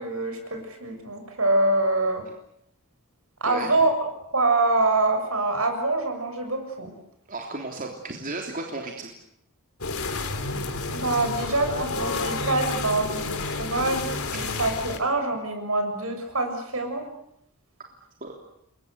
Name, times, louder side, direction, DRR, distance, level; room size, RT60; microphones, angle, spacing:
voice 1, 0.0-2.2 3.4-3.9 4.3-6.9 10.9-17.1, right 2 dB, 70° right, 6 dB, 7.0 m, -25 dB
voice 2, 3.4-3.8 7.3-9.1 14.4-14.5 18.2-18.3, right 2 dB, 40° right, 1 dB, 3.3 m, -34 dB
sound 1, 9.8-15.0, left 3 dB, 80° left, 3.6 m, -30 dB
29.0 x 23.5 x 8.2 m, 0.75 s
head